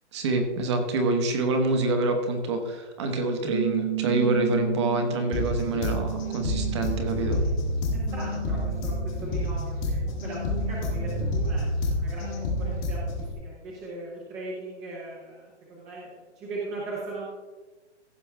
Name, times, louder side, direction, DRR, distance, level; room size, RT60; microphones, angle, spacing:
voice 1, 0.1-7.4, right 2 dB, 25° right, 6 dB, 1.1 m, -26 dB
sound 1, 3.5-9.5 10.0-11.3, right 14 dB, 70° right, 1.8 m, -35 dB
sound 2, 5.3-13.3, left 1 dB, 15° left, 1.2 m, -29 dB
voice 2, 7.9-17.3, right 2 dB, 10° right, -5 dB, 0.8 m, -39 dB
15.5 x 6.8 x 3.4 m, 1.3 s
hypercardioid pair, 170°, 34 cm